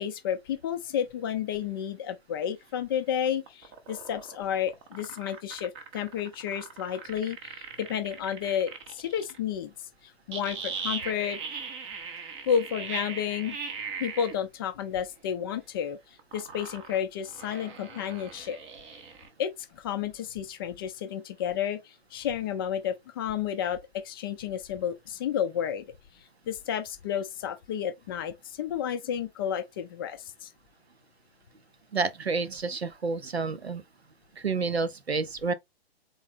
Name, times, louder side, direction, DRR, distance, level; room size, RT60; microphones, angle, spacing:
voice 1, 0.0-9.7 10.0-11.6 12.5-13.6 14.0-18.6 19.4-25.8 26.5-30.5, left 9 dB, 25° left, 0.4 m, -31 dB
sound 1, 3.3-9.4 10.3-14.4 16.2-19.3, right 6 dB, 20° right, 0.6 m, -39 dB
voice 2, 31.9-33.8 34.3-35.5, right 4 dB, 80° right, 0.7 m, -29 dB
3.8 x 3.2 x 3.4 m
figure-of-eight pair, 115°, 31 cm